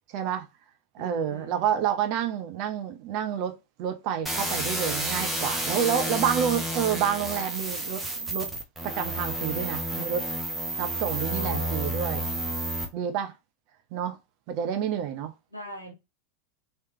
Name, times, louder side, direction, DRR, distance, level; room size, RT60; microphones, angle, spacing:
voice 1, 0.1-0.5 0.9-8.5 8.8-10.3 10.8-12.2 12.9-13.3 13.9-14.2 14.5-15.3, right 9 dB, 45° right, 0.7 m, -29 dB
voice 2, 1.0-1.8 11.3-12.7 15.5-15.9, right 1 dB, 85° left, 1.2 m, -43 dB
sound 1, 4.3-12.9, right 1 dB, 5° right, 1.0 m, -30 dB
3.3 x 3.2 x 2.7 m
figure-of-eight pair, 90°, 0 cm